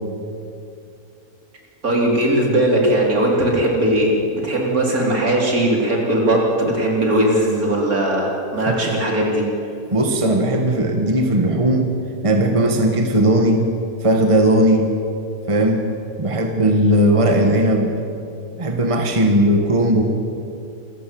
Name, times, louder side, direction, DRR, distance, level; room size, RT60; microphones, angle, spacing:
voice 1, 1.8-9.4, right 1 dB, 65° right, -1 dB, 4.4 m, -19 dB
voice 2, 9.9-11.9 12.2-13.6 14.0-14.9 15.5-15.8 16.2-17.9 18.6-20.0, right 1 dB, 20° right, 3 dB, 1.6 m, -17 dB
26.5 x 15.0 x 7.7 m, 2.6 s
omnidirectional pair, 1.6 m